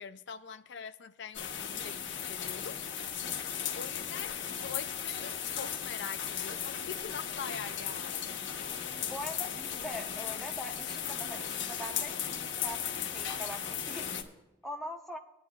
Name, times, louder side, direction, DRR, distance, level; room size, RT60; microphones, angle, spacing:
voice 1, 0.0-2.8 3.8-8.3, left 6 dB, 65° left, 0.4 m, -44 dB
sound 1, 1.3-14.2, left 8 dB, 85° left, 1.2 m, -36 dB
voice 2, 8.9-14.1 14.6-15.2, equal, ahead, 1.0 m, -43 dB
18.5 x 9.9 x 2.4 m
head